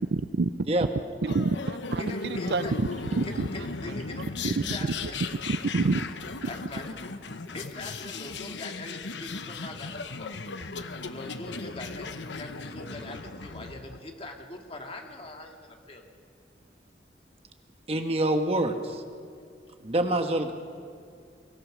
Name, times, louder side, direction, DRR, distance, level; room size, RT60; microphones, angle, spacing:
voice 1, 0.1-0.5 1.2-2.6 3.2-3.3 4.4-4.5 5.5-6.0, right 3 dB, 65° right, 14 dB, 0.5 m, -27 dB
sound 1, 1.3-14.0, left 4 dB, 80° left, 1.0 m, -37 dB
voice 2, 2.0-2.7 3.2-5.2 6.5-7.0 7.5-10.3 11.0-12.1 12.4-16.0, left 2 dB, 35° left, 2 dB, 2.1 m, -42 dB
voice 3, 17.9-19.0 19.8-20.5, right 1 dB, 35° right, 6 dB, 1.2 m, -26 dB
23.0 x 18.0 x 6.3 m, 2.3 s
head